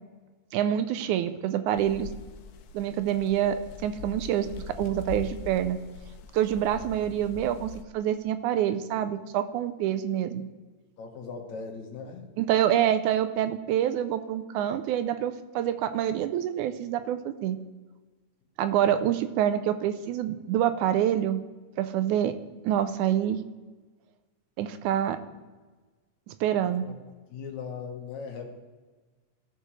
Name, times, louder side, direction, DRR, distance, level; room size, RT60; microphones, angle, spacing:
voice 1, 0.5-2.1 2.7-5.8 6.3-10.4 12.4-17.6 18.6-21.4 21.8-22.4 22.6-23.4 24.6-25.2 26.3-26.9, right 10 dB, 80° right, 11 dB, 1.9 m, -26 dB
sound 1, 1.8-7.8, left 5 dB, 85° left, 2.1 m, -42 dB
voice 2, 11.0-12.3 25.3-25.4 26.8-27.0 27.3-28.5, left 5 dB, 65° left, 3 dB, 2.4 m, -39 dB
16.5 x 6.7 x 3.2 m, 1.3 s
omnidirectional pair, 3.7 m